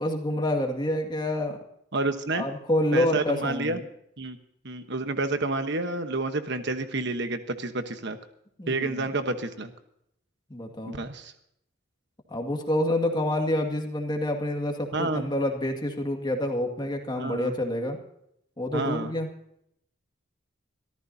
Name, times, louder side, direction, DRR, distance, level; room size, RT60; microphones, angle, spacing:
voice 1, 0.0-1.6 2.3-3.8 8.6-9.1 10.5-11.0 12.3-18.0 18.6-19.3, left 1 dB, 20° left, 3 dB, 2.1 m, -28 dB
voice 2, 1.9-2.4 2.9-3.8 4.2-4.4 4.6-8.2 8.7-9.7 10.9-11.3 14.9-15.3 17.2-17.5 18.7-19.1, right 2 dB, 55° right, 8 dB, 1.1 m, -29 dB
25.0 x 14.0 x 2.8 m, 0.75 s
head